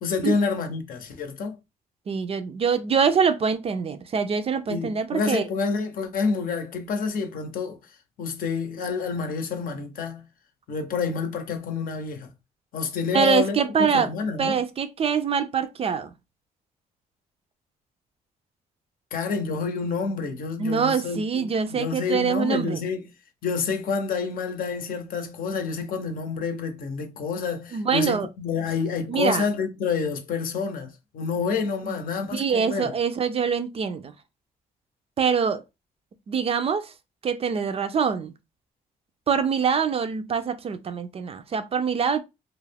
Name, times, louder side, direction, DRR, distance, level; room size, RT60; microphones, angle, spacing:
voice 1, 0.0-1.6 4.7-10.2 10.7-12.3 12.7-14.6 19.1-23.1 23.4-32.9, left 5 dB, 65° left, 0.7 m, -28 dB
voice 2, 2.1-5.4 13.1-14.1 14.4-16.1 20.6-22.8 27.7-28.3 29.1-29.4 31.9-32.0 32.3-34.1 35.2-35.6 36.3-36.9 37.2-38.3 39.3-42.2, right 6 dB, 40° right, 0.4 m, -24 dB
2.3 x 2.0 x 3.3 m
cardioid pair, 85°, 16 cm